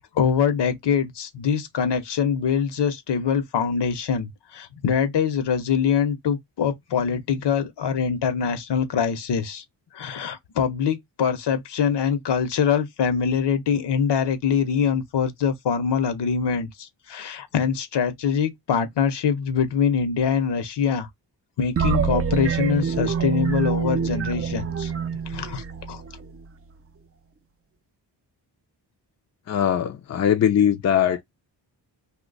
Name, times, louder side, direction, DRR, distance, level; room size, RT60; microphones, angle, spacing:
voice 1, 0.1-9.6 9.9-21.1 21.6-24.9 25.3-26.0, left 7 dB, 70° left, 0.8 m, -24 dB
sound 1, 21.8-26.4, right 6 dB, 35° right, 0.4 m, -25 dB
voice 2, 29.5-31.2, left 9 dB, 40° left, 0.4 m, -20 dB
2.8 x 2.2 x 3.9 m
wide cardioid pair, 145°, 43 cm